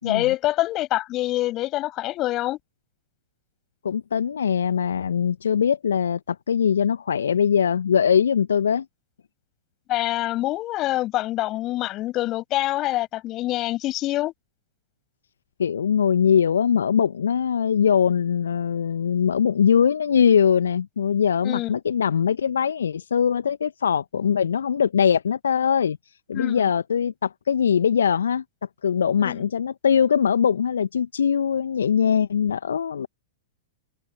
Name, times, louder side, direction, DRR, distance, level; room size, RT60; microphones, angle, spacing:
voice 1, 0.0-2.6 9.9-14.3 21.4-21.7 26.3-26.7 29.2-29.4, left 16 dB, 35° left, 7.4 m, -25 dB
voice 2, 3.8-8.8 15.6-26.0 26.3-28.4 28.8-33.1, left 7 dB, 70° left, 1.4 m, -21 dB
open air
figure-of-eight pair, 100°, 0 cm